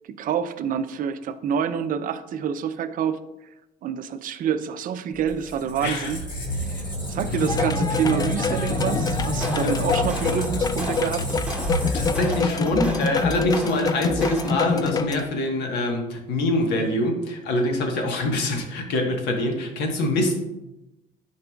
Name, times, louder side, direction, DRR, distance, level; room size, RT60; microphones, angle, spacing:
voice 1, 0.1-3.3 3.8-6.2 6.6-11.3, right 8 dB, 55° right, 11 dB, 0.5 m, -27 dB
Squeak, 5.2-12.9, left 1 dB, 50° left, 2.4 m, -29 dB
voice 2, 5.8-6.1 9.6-9.7 11.9-20.3, left 1 dB, 80° left, 2 dB, 1.3 m, -25 dB
sound 1, 7.4-15.2, left 5 dB, 20° left, 0.3 m, -26 dB
sound 2, 9.1-14.8, right 1 dB, 5° right, 0.9 m, -34 dB
10.5 x 4.7 x 2.3 m, 0.95 s
cardioid pair, 110°, 17 cm